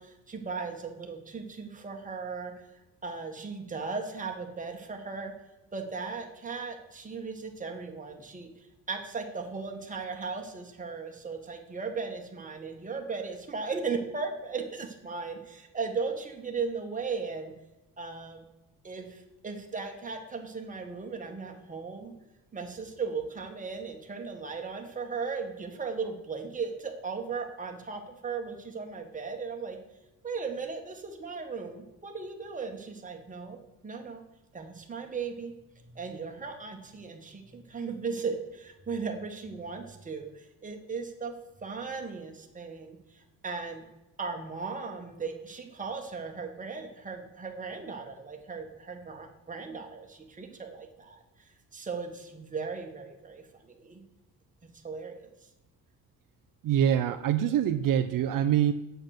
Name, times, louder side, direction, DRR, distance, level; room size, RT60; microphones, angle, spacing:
voice 1, 0.0-2.6 3.0-5.3 5.7-8.5 8.9-17.5 18.0-18.4 18.8-22.1 22.5-29.8 30.2-34.2 34.5-35.5 35.8-41.4 41.6-43.8 44.2-51.2 51.7-54.0 54.8-55.3, right 4 dB, 20° right, 2 dB, 1.6 m, -37 dB
voice 2, 56.6-58.7, right 10 dB, 65° right, 9 dB, 0.6 m, -25 dB
8.7 x 8.0 x 6.6 m, 1.0 s
cardioid pair, 140°, 36 cm